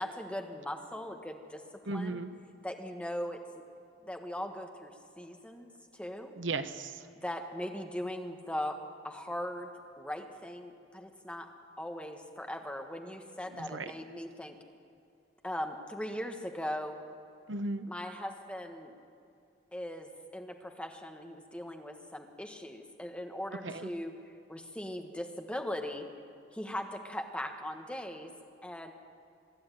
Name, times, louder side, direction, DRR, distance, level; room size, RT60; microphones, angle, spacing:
voice 1, 0.0-1.6 1.9-2.2 2.6-3.4 4.0-4.9 5.2-5.7 5.9-6.3 7.2-9.7 10.0-11.5 11.8-14.6 15.4-17.0 17.9-18.9 19.7-24.1 24.5-26.1 26.5-28.3 28.6-28.9, left 1 dB, 5° left, 4 dB, 1.4 m, -39 dB
voice 2, 1.9-2.3 6.4-6.9 13.7-13.8 17.5-17.9 23.6-23.9, right 3 dB, 75° right, 10 dB, 1.0 m, -35 dB
24.5 x 11.5 x 9.1 m, 2.5 s
head